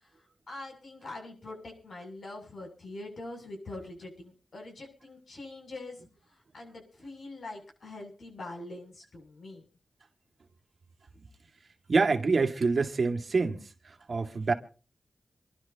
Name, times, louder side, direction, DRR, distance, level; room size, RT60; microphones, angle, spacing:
voice 1, 0.5-6.0 6.3-9.6, left 2 dB, 70° left, 7.6 m, -43 dB
voice 2, 11.9-13.6 14.1-14.5, right 4 dB, 55° right, 2.1 m, -26 dB
27.0 x 12.0 x 2.9 m
wide cardioid pair, 80°, 0 cm